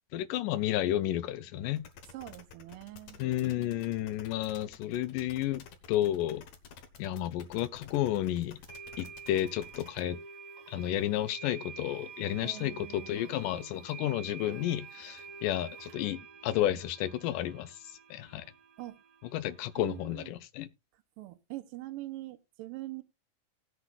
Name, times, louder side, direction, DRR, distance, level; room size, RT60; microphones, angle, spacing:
voice 1, 0.1-1.8 3.2-6.4 7.0-8.6 9.0-10.2 10.7-17.8 18.1-18.5 19.2-20.7, left 12 dB, 80° left, 2.2 m, -32 dB
sound 1, 1.8-10.0, left 6 dB, 60° left, 2.1 m, -51 dB
voice 2, 2.1-3.2 12.4-13.3 18.8-19.0 19.8-20.3 21.2-23.0, right 17 dB, 90° right, 2.4 m, -43 dB
sound 2, 7.7-7.8 8.7-20.3, right 6 dB, 60° right, 2.6 m, -49 dB
18.5 x 8.0 x 2.4 m
omnidirectional pair, 3.9 m